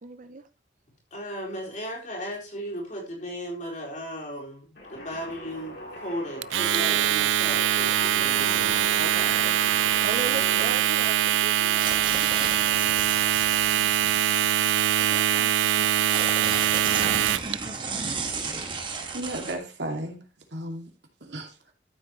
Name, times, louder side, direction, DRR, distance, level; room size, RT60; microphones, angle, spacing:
voice 1, 0.0-0.4 9.0-13.9 15.0-15.5 15.8-15.9 16.7-17.8, right 3 dB, 45° right, 0.7 m, -39 dB
voice 2, 1.1-8.9, equal, 40° left, 4.2 m, -36 dB
sound 1, 4.8-11.5, left 1 dB, 60° left, 4.3 m, -39 dB
Domestic sounds home sounds, 6.4-17.6, right 11 dB, 85° right, 0.4 m, -23 dB
sound 2, 11.7-15.0 15.6-19.5, right 4 dB, 25° right, 1.6 m, -34 dB
voice 3, 19.1-20.2 20.5-20.9 21.2-21.7, right 1 dB, 70° right, 2.5 m, -34 dB
13.5 x 8.0 x 3.2 m
head